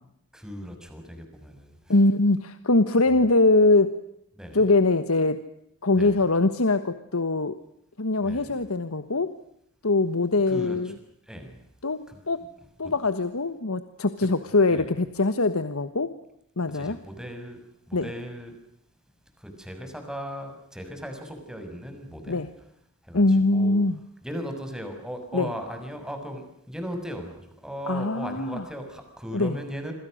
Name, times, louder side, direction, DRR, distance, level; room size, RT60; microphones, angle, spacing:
voice 1, 0.3-1.9 4.4-4.6 5.9-6.2 8.2-8.6 10.5-11.0 11.3-11.7 12.1-12.2 12.8-12.9 14.7-14.9 16.7-17.6 17.9-18.6 19.4-22.5 23.0-23.8 24.2-29.9, equal, 5° right, 5 dB, 6.4 m, -37 dB
voice 2, 1.9-4.0 4.5-5.4 5.8-7.6 8.0-9.4 9.8-10.9 11.8-12.0 12.3-12.5 12.8-16.1 16.6-17.0 17.9-18.1 22.3-22.5 23.1-24.0 25.3-25.5 27.9-28.6 29.3-29.6, left 2 dB, 90° left, 11 dB, 1.4 m, -22 dB
28.0 x 26.5 x 6.5 m, 0.76 s
head